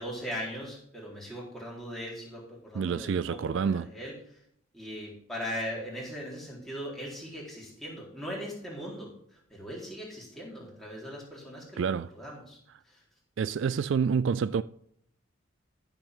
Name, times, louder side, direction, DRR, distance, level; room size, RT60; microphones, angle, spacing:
voice 1, 0.0-4.4 4.7-11.9 12.1-12.6 12.9-13.0, equal, ahead, 3.9 m, -39 dB
voice 2, 2.7-3.9 11.8-12.1 13.4-14.6, right 6 dB, 65° right, 0.3 m, -28 dB
14.5 x 7.2 x 3.8 m
head